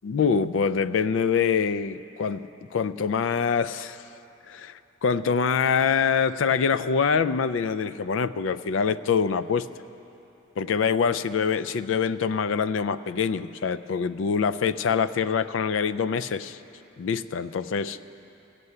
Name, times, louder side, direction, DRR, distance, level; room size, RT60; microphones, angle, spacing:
voice 1, 0.0-4.0 4.5-9.7 10.6-16.6 17.0-18.0, left 6 dB, 65° left, 15 dB, 0.4 m, -25 dB
15.0 x 6.8 x 9.6 m, 2.9 s
head